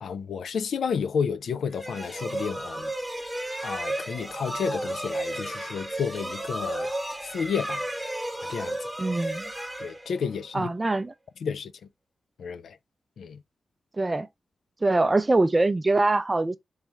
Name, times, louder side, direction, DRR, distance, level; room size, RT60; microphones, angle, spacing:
voice 1, 0.0-2.9 3.6-6.9 7.2-7.9 8.5-8.8 9.8-10.7 11.4-11.7 12.4-12.8 13.2-13.4, left 6 dB, 90° left, 0.3 m, -31 dB
sound 1, 1.7-10.5, right 1 dB, 5° right, 0.9 m, -33 dB
voice 2, 9.0-9.5 10.5-11.1 14.0-14.3 14.8-16.6, right 2 dB, 25° right, 0.4 m, -23 dB
3.5 x 3.2 x 2.8 m
wide cardioid pair, 95°, 0 cm